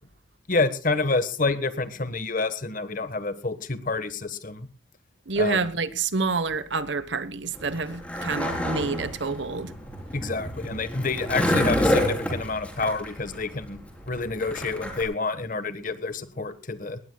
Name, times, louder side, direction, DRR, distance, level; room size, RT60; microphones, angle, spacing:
voice 1, 0.5-4.7 5.4-5.6 10.1-13.8 14.1-17.0, left 3 dB, 45° left, 1.4 m, -28 dB
voice 2, 5.3-9.7, right 4 dB, 65° right, 1.2 m, -28 dB
Skateboard, 7.6-15.0, equal, 5° left, 4.0 m, -28 dB
20.5 x 18.5 x 2.3 m
head